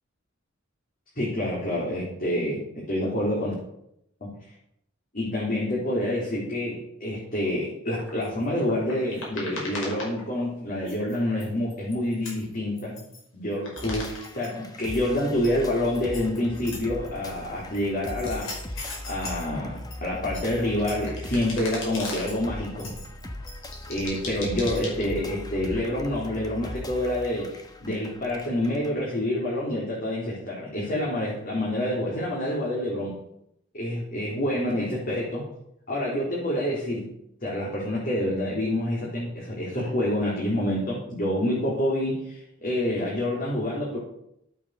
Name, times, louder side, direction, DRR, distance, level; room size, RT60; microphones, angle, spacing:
voice 1, 1.2-3.5 4.2-4.3 5.1-13.0 13.3-22.9 23.9-33.2 33.7-35.4 35.9-37.1 37.4-44.0, left 1 dB, 45° left, -6 dB, 3.8 m, -27 dB
sound 1, 8.0-10.6 10.9-13.2 13.5-14.5 14.8-17.3 17.7-19.5 19.8-22.4 22.8-25.2, left 2 dB, 80° left, 5.8 m, -39 dB
sound 2, 13.8-28.9, left 1 dB, 20° left, 1.2 m, -39 dB
12.0 x 8.6 x 6.6 m, 0.76 s
head